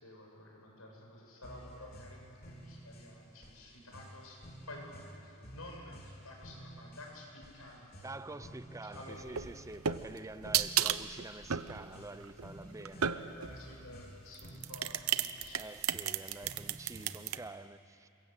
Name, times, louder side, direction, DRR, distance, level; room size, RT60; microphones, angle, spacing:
voice 1, 0.0-4.4 4.7-4.9 5.2-9.4 13.0-15.7, left 1 dB, 90° left, 0 dB, 6.7 m, -51 dB
sound 1, 1.4-17.4, equal, 45° left, 3.8 m, -52 dB
voice 2, 8.0-13.1 15.5-18.1, right 2 dB, 15° right, 13 dB, 0.5 m, -47 dB
sound 2, 9.2-13.6 14.3-17.4, right 9 dB, 90° right, 0.8 m, -33 dB
27.5 x 23.5 x 8.3 m, 2.7 s
head